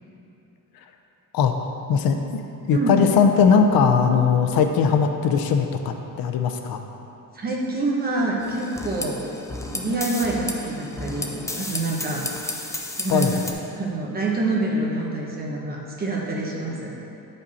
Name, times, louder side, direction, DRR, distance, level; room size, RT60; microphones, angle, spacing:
voice 1, 1.9-2.4 2.7-6.8 13.1-13.4, left 6 dB, 75° left, 5 dB, 0.6 m, -19 dB
voice 2, 7.3-9.2 9.7-12.2 13.0-13.4 13.7-16.9, right 2 dB, 25° right, -3 dB, 1.1 m, -26 dB
sound 1, 8.4-13.5, left 2 dB, 10° left, 0.4 m, -32 dB
10.0 x 5.4 x 4.1 m, 3.0 s
cardioid pair, 175°, 36 cm